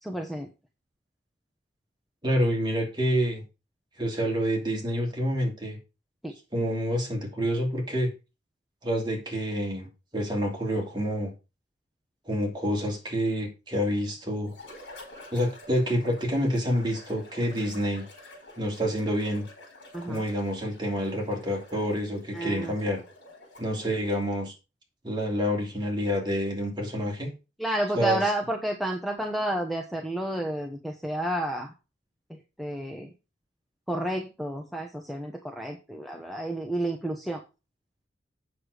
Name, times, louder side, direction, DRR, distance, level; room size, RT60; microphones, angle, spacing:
voice 1, 0.0-0.5 6.2-6.3 19.9-20.2 22.3-22.7 27.6-31.7 32.3-33.1 33.9-37.4, right 1 dB, ahead, 2 dB, 0.9 m, -31 dB
voice 2, 2.2-3.4 4.0-5.8 6.5-8.1 8.8-9.9 10.1-11.3 12.3-14.5 15.3-18.1 18.6-19.5 20.0-23.0 23.6-24.5 25.0-27.3 28.0-28.2, equal, 25° right, 0 dB, 2.7 m, -28 dB
sound 1, 14.5-24.4, left 1 dB, 65° left, 4.7 m, -49 dB
8.2 x 6.7 x 4.9 m, 0.30 s
head